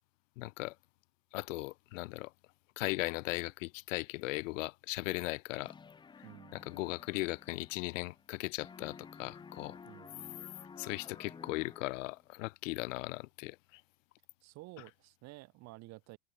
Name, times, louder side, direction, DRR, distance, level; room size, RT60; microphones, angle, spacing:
voice 1, 0.4-0.7 1.3-2.3 2.8-5.7 6.5-9.8 10.8-13.8, left 21 dB, 70° left, 0.6 m, -38 dB
sound 1, 5.6-8.4 8.6-12.2, left 5 dB, 10° left, 1.2 m, -53 dB
voice 2, 6.2-6.7 9.8-10.4 14.4-16.2, right 21 dB, 40° right, 4.7 m, -52 dB
supercardioid pair, 150°, 39 cm